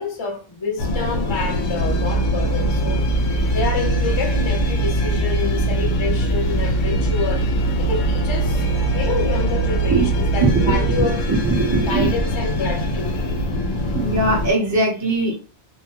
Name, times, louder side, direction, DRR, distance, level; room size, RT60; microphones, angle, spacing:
voice 1, 0.0-3.1 3.5-7.5 7.8-11.2 11.9-13.2, left 4 dB, 30° left, 0.5 m, -27 dB
sound 1, 0.8-14.5, left 1 dB, 85° left, 1.0 m, -24 dB
sound 2, 1.8-11.0, right 6 dB, 65° right, 0.4 m, -23 dB
voice 2, 10.4-12.1 13.9-15.4, right 3 dB, 15° right, 0.7 m, -20 dB
2.7 x 2.2 x 2.9 m
omnidirectional pair, 1.3 m